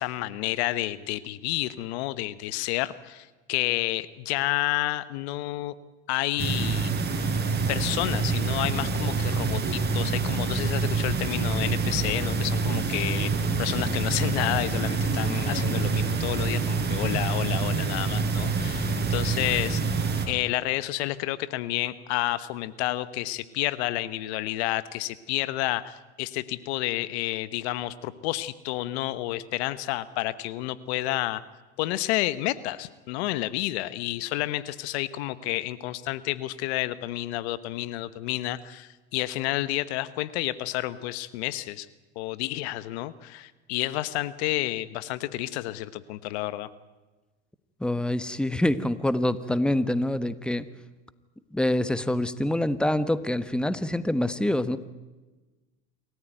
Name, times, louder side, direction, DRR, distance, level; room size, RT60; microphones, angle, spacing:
voice 1, 0.0-5.7 6.1-6.9 7.7-19.8 20.3-31.4 31.8-41.9 42.1-46.7, left 16 dB, 75° left, 16 dB, 1.2 m, -30 dB
sound 1, 6.4-20.3, right 4 dB, 30° right, 5.3 m, -26 dB
voice 2, 47.8-50.7 51.5-54.8, left 1 dB, 5° left, 13 dB, 1.3 m, -26 dB
28.0 x 14.5 x 9.2 m, 1.2 s
hypercardioid pair, 80°, 33 cm